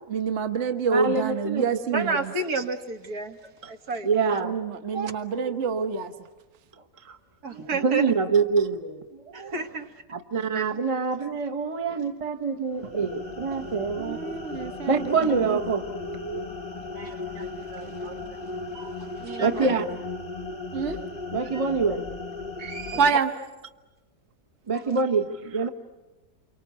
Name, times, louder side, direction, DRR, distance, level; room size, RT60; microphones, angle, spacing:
voice 1, 0.1-2.1 4.4-6.1 14.0-15.0 15.3-15.6 20.7-21.0 23.0-23.3, right 5 dB, 50° right, 7 dB, 1.4 m, -26 dB
voice 2, 0.9-1.7 1.9-2.1 4.0-4.5 4.9-5.1 5.3-5.5 7.0-7.2 7.5-9.5 10.1-14.2 14.9-16.5 19.4-19.8 21.3-22.1 24.7-25.7, right 5 dB, 25° right, 7 dB, 1.0 m, -26 dB
voice 3, 1.9-4.1 7.4-8.1 9.3-9.9 10.5-10.7 13.5-13.7 17.0-19.8 21.5-21.7 22.6-23.2 24.7-25.0, right 3 dB, 65° right, 5 dB, 2.1 m, -33 dB
sound 1, 12.7-23.1, left 3 dB, 30° left, 0.9 m, -36 dB
29.0 x 24.0 x 8.4 m, 1.1 s
omnidirectional pair, 1.7 m